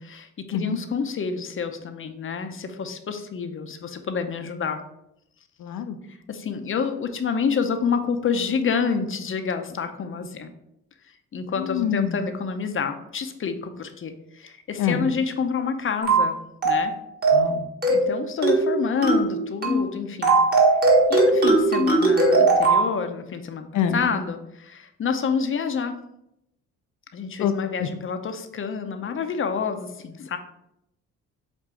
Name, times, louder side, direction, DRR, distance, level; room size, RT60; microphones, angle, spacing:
voice 1, 0.0-4.8 6.3-10.5 11.1-16.4 16.6-16.9 17.9-20.8 21.1-26.0 27.1-30.4, left 6 dB, 45° left, 7 dB, 0.7 m, -28 dB
voice 2, 5.6-6.0 11.6-12.2 14.8-15.1 17.3-17.7 23.7-24.0 27.4-27.5 27.8-27.9, left 8 dB, 75° left, 8 dB, 0.7 m, -25 dB
sound 1, 16.0-16.3 16.6-16.9 17.2-17.5 17.8-18.1 18.4-18.7 19.0-19.3 19.6-19.9 20.2-22.9, right 2 dB, 30° right, 1.7 m, -18 dB
7.5 x 2.7 x 4.7 m, 0.81 s
cardioid pair, 90°, 30 cm